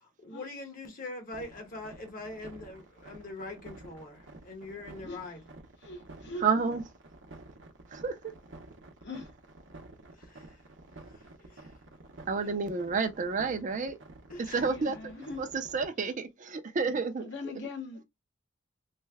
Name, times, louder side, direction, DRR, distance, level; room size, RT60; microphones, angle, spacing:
voice 1, 0.0-5.4 10.1-10.6 11.1-11.7 14.3-14.7 17.4-17.6, left 2 dB, 45° left, 1.1 m, -43 dB
sound 1, 1.3-15.9, right 2 dB, 75° right, 0.7 m, -50 dB
voice 2, 5.8-6.5 9.0-9.3 12.4-12.5 14.6-15.4 16.0-16.2 17.2-18.0, left 2 dB, 65° left, 1.0 m, -41 dB
voice 3, 6.4-6.8 7.9-8.2 12.3-14.0 14.4-15.1 15.4-17.2, right 4 dB, 40° right, 0.5 m, -30 dB
3.2 x 2.1 x 3.3 m
head